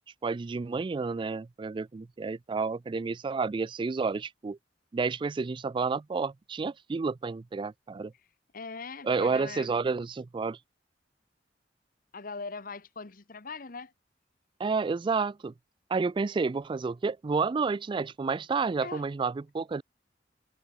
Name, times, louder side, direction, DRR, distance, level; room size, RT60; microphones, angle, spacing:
voice 1, 0.2-4.6 4.9-8.1 9.0-10.6 14.6-15.5 15.9-19.8, right 4 dB, 30° right, 0.3 m, -30 dB
voice 2, 8.5-9.7 12.1-13.9 18.8-19.0, left 4 dB, 55° left, 1.3 m, -41 dB
head